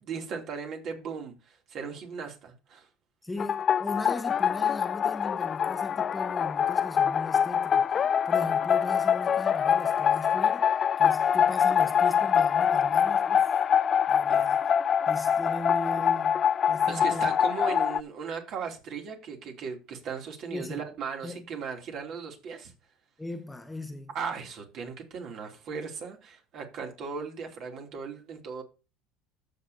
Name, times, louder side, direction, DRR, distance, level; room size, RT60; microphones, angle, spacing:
voice 1, 0.0-2.9 14.3-14.4 16.9-22.7 24.1-28.6, right 5 dB, 55° right, 2.8 m, -37 dB
voice 2, 3.2-7.9 8.2-10.7 11.0-13.5 14.1-14.7 15.1-17.3 20.5-20.8 21.2-21.5 23.2-24.1, left 2 dB, 10° left, 1.1 m, -38 dB
sound 1, 3.4-18.0, left 8 dB, 40° left, 0.4 m, -24 dB
13.5 x 6.5 x 2.7 m
hypercardioid pair, 85°, 0 cm